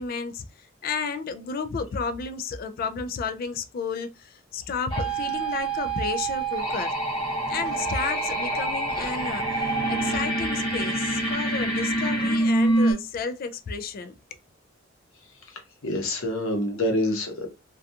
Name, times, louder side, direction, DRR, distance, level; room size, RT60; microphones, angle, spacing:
voice 1, 0.0-6.9 7.5-14.2, left 5 dB, 45° left, 0.3 m, -32 dB
sound 1, 4.9-12.9, right 2 dB, 25° left, 0.8 m, -26 dB
voice 2, 15.8-17.5, left 1 dB, 90° left, 0.7 m, -26 dB
2.6 x 2.2 x 2.4 m
head